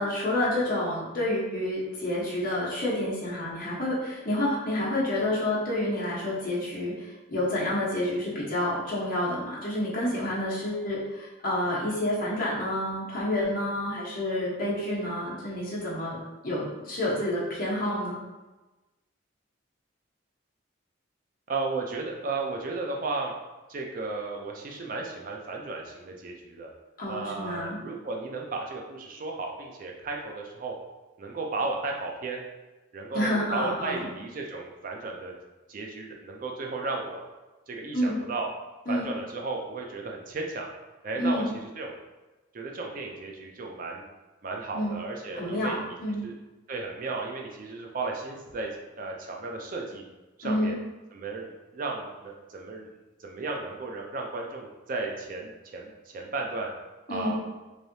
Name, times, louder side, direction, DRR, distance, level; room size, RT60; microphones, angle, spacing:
voice 1, 0.0-16.2 16.4-18.2 27.0-27.8 33.1-34.1 37.9-38.2 38.9-39.1 41.2-41.5 44.7-45.0 45.3-46.2 50.4-50.7 57.1-57.3, left 1 dB, 45° left, -7 dB, 1.0 m, -29 dB
voice 2, 21.5-23.3 23.7-26.7 27.1-30.7 31.2-32.4 32.9-35.3 35.7-37.2 37.7-38.5 38.9-40.7 41.0-41.4 41.8-41.9 42.5-44.0 44.4-45.9 46.2-46.3 46.7-50.0 50.4-50.8 51.1-52.9 53.2-56.7 57.1-57.4, right 3 dB, 45° right, 1 dB, 0.4 m, -34 dB
3.2 x 2.7 x 2.7 m, 1.1 s
head